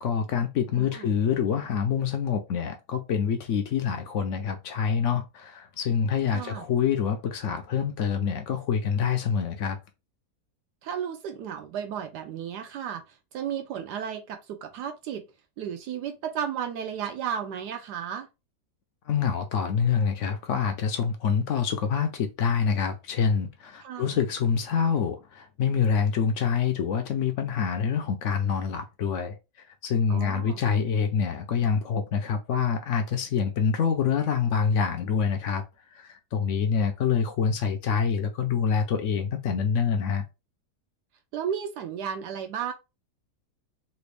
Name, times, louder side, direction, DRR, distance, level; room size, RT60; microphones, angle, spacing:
voice 1, 0.0-9.8 19.1-29.4 29.8-35.6 35.9-40.2, left 7 dB, 70° left, 0.7 m, -26 dB
voice 2, 0.8-1.1 6.3-6.6 10.8-15.2 15.6-18.3 23.8-24.2 30.1-30.6 41.3-42.7, right 8 dB, 85° right, 1.2 m, -34 dB
3.4 x 2.5 x 3.2 m
omnidirectional pair, 1.7 m